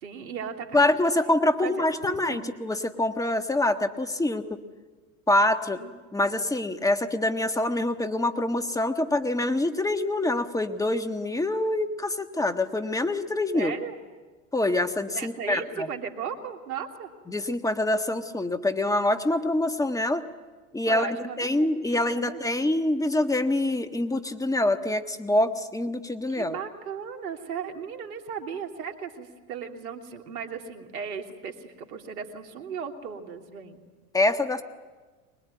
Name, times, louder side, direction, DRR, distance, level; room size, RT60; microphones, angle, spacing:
voice 1, 0.0-1.3 1.6-1.9 2.3-2.5 5.8-5.9 6.2-6.3 13.5-14.0 15.1-17.1 20.9-22.4 26.3-33.8, right 7 dB, 80° right, 4 dB, 2.9 m, -36 dB
voice 2, 0.7-4.6 5.3-5.8 6.1-13.7 14.5-15.9 17.3-20.3 20.7-26.6 34.1-34.6, left 1 dB, 10° left, 8 dB, 1.6 m, -25 dB
25.0 x 20.0 x 9.5 m, 1.4 s
hypercardioid pair, 100°, 43 cm